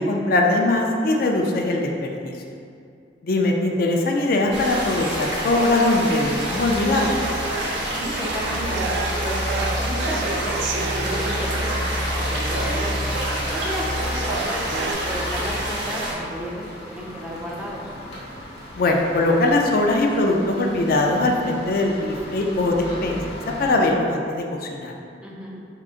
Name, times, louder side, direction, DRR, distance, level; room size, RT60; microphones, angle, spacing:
voice 1, 0.1-2.3 3.2-7.2 18.8-23.2 23.6-24.4 24.7-24.9, left 2 dB, 55° left, 1 dB, 0.4 m, -21 dB
sound 1, 4.4-23.7, left 1 dB, 35° left, 0.9 m, -33 dB
sound 2, 4.5-16.1, right 1 dB, 70° right, 0.9 m, -28 dB
sound 3, 6.9-14.9, right 3 dB, 85° right, 0.3 m, -31 dB
voice 2, 7.9-9.4 9.8-11.8 12.3-13.0 13.5-17.8 25.2-25.6, equal, 5° right, -4 dB, 0.5 m, -33 dB
4.9 x 3.7 x 2.4 m, 2.4 s
head